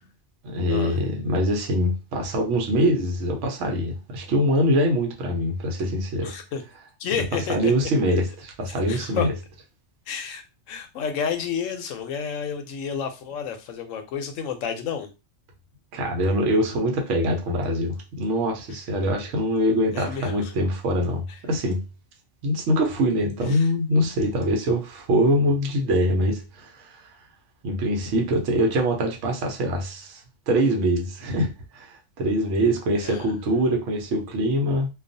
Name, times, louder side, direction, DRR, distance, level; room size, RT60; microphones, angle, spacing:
voice 1, 0.4-6.3 7.5-9.3 15.9-21.8 22.4-27.1 27.6-34.9, equal, 70° right, 1.0 m, -24 dB
voice 2, 6.2-6.6 7.0-7.7 8.9-9.3 10.1-15.1 19.9-20.5 23.5-23.7 33.0-33.3, left 7 dB, 75° left, 0.9 m, -30 dB
2.3 x 2.3 x 2.6 m
omnidirectional pair, 1.3 m